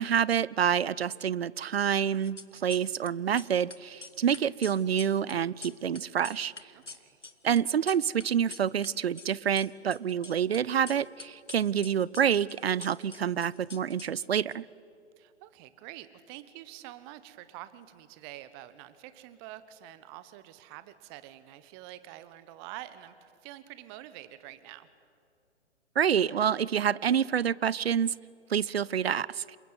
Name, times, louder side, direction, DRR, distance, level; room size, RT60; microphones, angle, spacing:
voice 1, 0.0-6.5 7.4-14.6 26.0-28.1 28.5-29.6, right 8 dB, 60° right, 22 dB, 0.7 m, -27 dB
sound 1, 2.1-3.1 3.3-8.9 9.1-10.6 10.9-14.5, left 3 dB, 85° left, 1.6 m, -46 dB
voice 2, 6.7-7.2 15.2-24.9, right 14 dB, 20° right, 13 dB, 1.1 m, -47 dB
27.5 x 22.5 x 9.5 m, 2.4 s
figure-of-eight pair, 130°, 35 cm